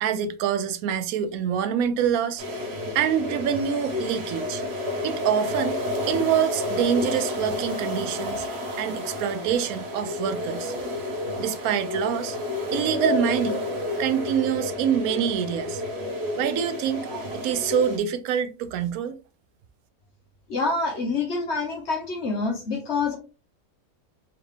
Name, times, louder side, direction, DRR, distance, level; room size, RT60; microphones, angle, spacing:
voice 1, 0.0-2.4 2.9-4.6 5.0-5.8 6.1-8.5 8.8-10.7 11.4-12.4 12.7-13.6 14.0-15.8 16.4-19.2, right 9 dB, 80° right, 1.0 m, -26 dB
sound 1, 2.4-18.0, left 2 dB, 50° right, 1.2 m, -30 dB
voice 2, 20.5-23.2, left 3 dB, 55° left, 1.2 m, -26 dB
3.6 x 3.5 x 3.2 m
omnidirectional pair, 1.5 m